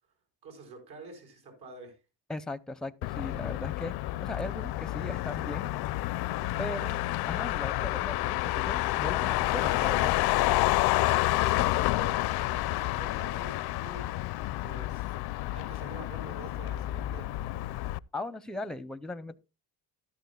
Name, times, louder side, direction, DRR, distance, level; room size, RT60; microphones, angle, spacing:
voice 1, 0.4-2.0 11.2-14.1 14.6-15.1 15.5-17.3, right 3 dB, 75° right, 5.1 m, -47 dB
voice 2, 2.3-3.9 4.2-5.7 6.6-7.0 7.2-10.1 18.1-19.4, left 2 dB, ahead, 0.5 m, -38 dB
Motor vehicle (road), 3.0-18.0, left 17 dB, 75° left, 0.5 m, -29 dB
13.5 x 12.5 x 2.2 m
cardioid pair, 135°, 39 cm